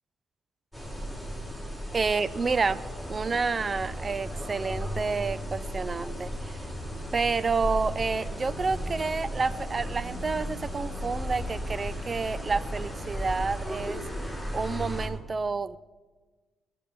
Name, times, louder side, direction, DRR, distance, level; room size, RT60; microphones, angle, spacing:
sound 1, 0.7-15.1, equal, 15° right, 5.2 m, -35 dB
voice 1, 1.9-2.8 3.1-6.6 7.1-14.0 14.5-15.8, right 4 dB, 35° right, 17 dB, 0.6 m, -29 dB
19.5 x 9.5 x 7.1 m, 1.3 s
cardioid pair, 90°, 0 cm